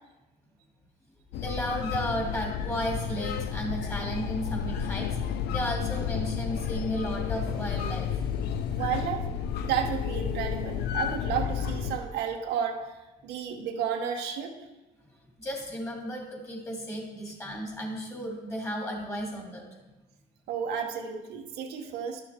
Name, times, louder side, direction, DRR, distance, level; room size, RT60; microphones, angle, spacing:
sound 1, 1.3-12.0, left 8 dB, 75° left, 0.5 m, -31 dB
voice 1, 1.3-5.2 5.5-8.2 15.4-19.7, equal, 15° left, -1 dB, 2.5 m, -34 dB
voice 2, 8.7-9.2 9.6-12.8 13.2-14.5 20.5-22.2, right 8 dB, 85° right, 2 dB, 1.1 m, -32 dB
11.5 x 6.9 x 3.6 m, 1.1 s
cardioid pair, 110°, 17 cm